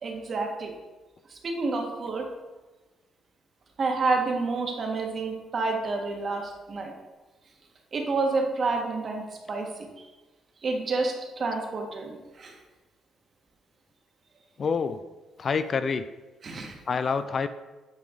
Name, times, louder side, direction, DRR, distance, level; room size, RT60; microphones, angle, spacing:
voice 1, 0.0-0.7 1.3-2.3 3.8-6.9 7.9-9.2 9.5-9.9 10.6-12.5 16.4-16.7, right 3 dB, 45° right, 1 dB, 1.6 m, -29 dB
voice 2, 14.6-15.0 15.4-16.1 16.9-17.5, left 5 dB, 45° left, 12 dB, 0.4 m, -27 dB
9.2 x 5.1 x 3.8 m, 1.2 s
cardioid pair, 90°, 0 cm